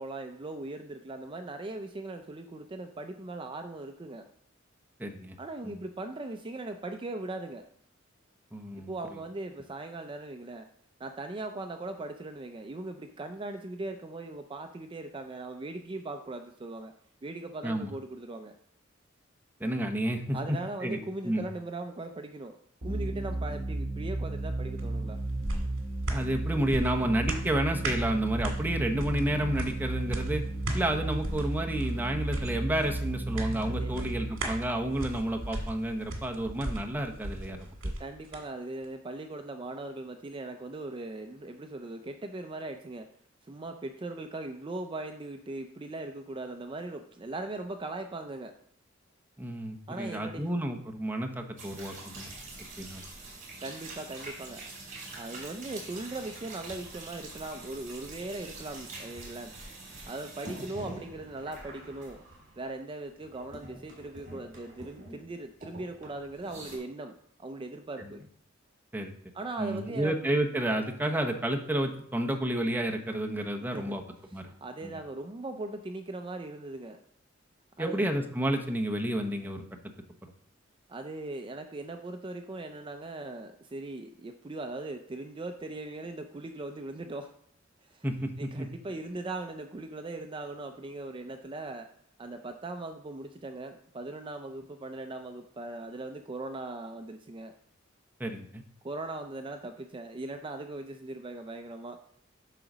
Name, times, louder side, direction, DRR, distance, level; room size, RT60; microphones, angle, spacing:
voice 1, 0.0-4.3 5.4-7.6 8.8-10.7 11.0-16.9 17.2-18.5 20.3-22.6 22.8-25.2 33.6-34.1 38.0-43.1 43.4-48.5 49.9-50.4 53.6-54.6 55.1-59.5 60.1-62.2 62.6-68.2 69.3-70.1 73.6-74.0 74.4-77.0 77.8-78.0 80.9-87.3 87.8-88.0 88.4-91.9 92.2-97.5 98.8-102.0, right 2 dB, 25° right, 6 dB, 0.4 m, -39 dB
voice 2, 5.0-5.4 5.6-5.8 8.5-8.9 17.6-17.9 19.6-21.0 21.2-21.4 26.1-30.4 30.7-37.9 49.4-52.3 52.8-53.0 68.0-68.2 68.9-69.1 69.6-74.0 74.3-74.5 74.8-74.9 77.8-79.6 88.0-88.7 98.2-98.6, right 1 dB, 10° right, 2 dB, 0.9 m, -31 dB
sound 1, 22.8-36.1, right 2 dB, 60° right, 1.6 m, -34 dB
sound 2, 24.8-38.4 38.8-38.9, right 1 dB, 75° right, 1.8 m, -38 dB
sound 3, 51.6-62.9 63.2-65.3 65.6-66.8, right 2 dB, 45° right, 3.2 m, -45 dB
9.0 x 3.9 x 6.1 m, 0.67 s
head